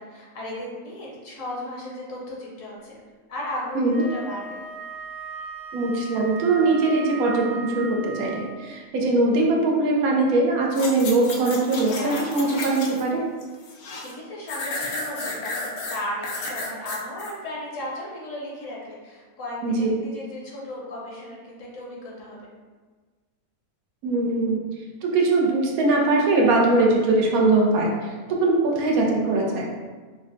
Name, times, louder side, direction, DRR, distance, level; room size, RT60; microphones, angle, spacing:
voice 1, 0.0-2.9 3.3-4.6 13.9-22.5, left 1 dB, 65° left, -4 dB, 1.1 m, -35 dB
Wind instrument woodwind instrument, 3.9-8.8, right 4 dB, 40° left, 0.3 m, -38 dB
voice 2, 5.7-13.2 19.6-20.0 24.0-24.6 25.0-28.1 28.4-29.7, right 2 dB, 80° right, -1 dB, 1.1 m, -21 dB
sound 1, 10.7-13.1 13.4-14.1 14.5-17.3 17.8-17.9, left 2 dB, 90° left, 1.1 m, -32 dB
4.6 x 2.1 x 2.5 m, 1.4 s
omnidirectional pair, 1.5 m